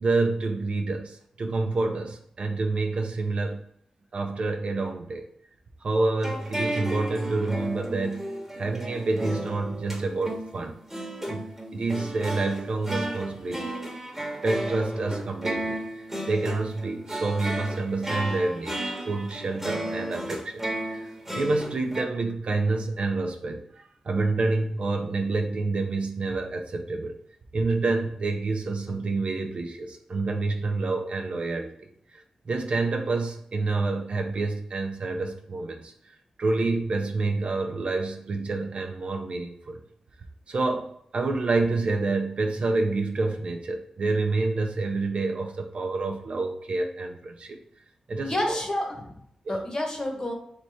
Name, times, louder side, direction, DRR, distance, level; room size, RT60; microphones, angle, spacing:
voice 1, 0.0-3.6 4.1-5.3 5.8-8.3 8.6-10.8 11.3-13.8 14.4-15.8 16.3-20.6 20.9-27.2 27.5-39.8 40.5-47.6 48.1-48.6 49.4-49.6, right 3 dB, 65° right, 3 dB, 0.6 m, -28 dB
sound 1, 6.2-22.0, right 1 dB, 15° right, 1.2 m, -34 dB
voice 2, 48.2-50.3, left 1 dB, 35° left, 1 dB, 1.2 m, -30 dB
3.3 x 3.0 x 4.2 m, 0.71 s
cardioid pair, 50°, 2 cm